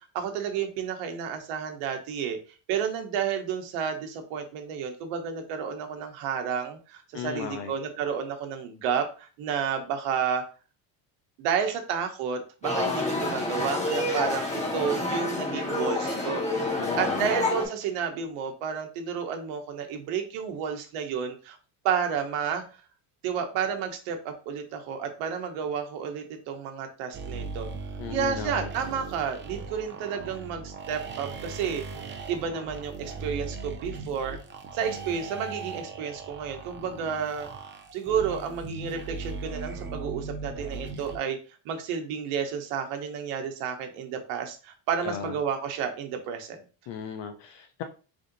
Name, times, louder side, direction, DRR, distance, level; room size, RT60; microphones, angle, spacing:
voice 1, 0.1-2.4 2.7-10.4 11.4-21.6 21.8-22.6 23.2-27.7 28.1-31.8 32.3-34.4 34.7-37.5 37.9-41.4 41.6-46.6, right 7 dB, 85° right, 5 dB, 1.1 m, -31 dB
voice 2, 7.1-7.7 16.8-17.3 28.0-28.7 45.0-45.3 46.9-47.8, left 7 dB, 60° left, 5 dB, 0.7 m, -36 dB
sound 1, 12.6-17.7, left 2 dB, 15° left, 1.3 m, -28 dB
sound 2, 27.1-41.2, right 4 dB, 25° right, 0.5 m, -38 dB
3.5 x 2.6 x 3.9 m, 0.35 s
cardioid pair, 120°, 49 cm